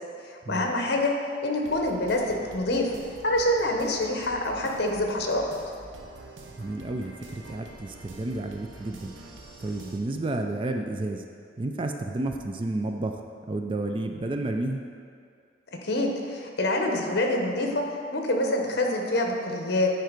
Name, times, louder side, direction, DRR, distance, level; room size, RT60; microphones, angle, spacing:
voice 1, 0.2-1.1 1.4-2.9 3.2-5.4 15.8-17.8 18.1-19.9, left 1 dB, 60° left, 2 dB, 1.0 m, -26 dB
sound 1, 1.6-10.0, right 1 dB, 85° right, 0.8 m, -46 dB
voice 2, 6.6-9.1 9.6-11.2 11.6-13.2 13.5-14.8, right 2 dB, 30° right, 5 dB, 0.4 m, -31 dB
9.2 x 4.5 x 5.1 m, 2.3 s
head